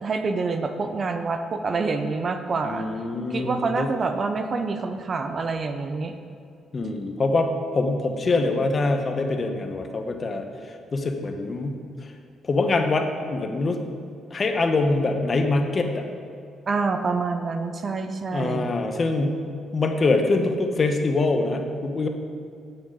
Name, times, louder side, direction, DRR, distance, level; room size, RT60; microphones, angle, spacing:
voice 1, 0.0-2.9 3.3-6.1 16.7-18.7, right 4 dB, 40° right, 7 dB, 0.7 m, -27 dB
voice 2, 2.6-3.9 6.7-10.5 10.9-12.1 12.4-13.8 14.3-16.0 18.3-19.5 19.7-22.1, left 3 dB, 40° left, 5 dB, 1.0 m, -24 dB
9.3 x 8.8 x 3.8 m, 2.3 s
cardioid pair, 90°, 0 cm